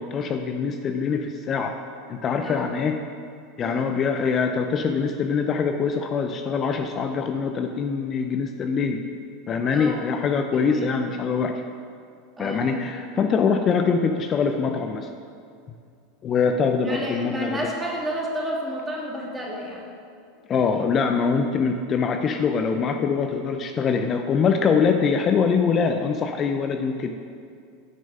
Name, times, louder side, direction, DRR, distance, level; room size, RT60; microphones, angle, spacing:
voice 1, 0.0-1.7 2.1-3.0 3.6-9.0 9.5-11.6 12.4-15.1 16.2-17.6 20.5-27.1, left 5 dB, 35° left, 5 dB, 0.5 m, -23 dB
voice 2, 2.4-2.7 3.6-3.9 9.7-10.0 10.5-10.9 12.4-12.7 16.8-19.9, equal, 15° right, -2 dB, 2.1 m, -31 dB
8.9 x 5.3 x 5.4 m, 2.3 s
hypercardioid pair, 90°, 0 cm